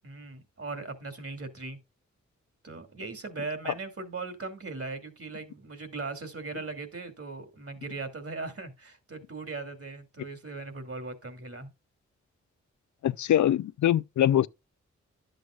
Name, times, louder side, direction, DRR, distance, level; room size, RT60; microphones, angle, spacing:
voice 1, 0.0-1.8 2.6-11.7, right 3 dB, 50° right, 2.5 m, -39 dB
voice 2, 13.0-14.5, left 11 dB, 80° left, 0.5 m, -23 dB
11.0 x 7.8 x 2.3 m
cardioid pair, 55°, 29 cm